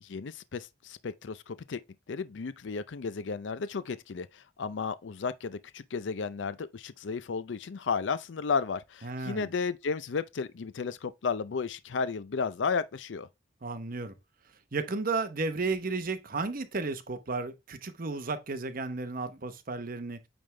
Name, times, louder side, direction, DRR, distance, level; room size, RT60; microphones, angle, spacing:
voice 1, 0.0-1.8 2.1-13.3, left 5 dB, 85° left, 0.5 m, -33 dB
voice 2, 9.0-9.5 13.6-14.1 14.7-20.2, right 3 dB, 50° right, 0.9 m, -33 dB
8.8 x 3.5 x 3.3 m
head